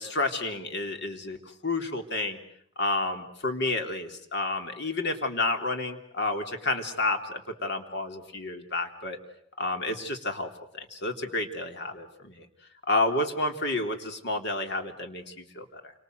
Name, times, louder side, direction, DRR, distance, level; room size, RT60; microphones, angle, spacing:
voice 1, 0.0-1.4 1.6-2.4 2.8-9.2 9.6-12.5 12.9-15.9, left 2 dB, 60° left, 5 dB, 3.4 m, -30 dB
29.5 x 25.5 x 8.0 m, 0.68 s
head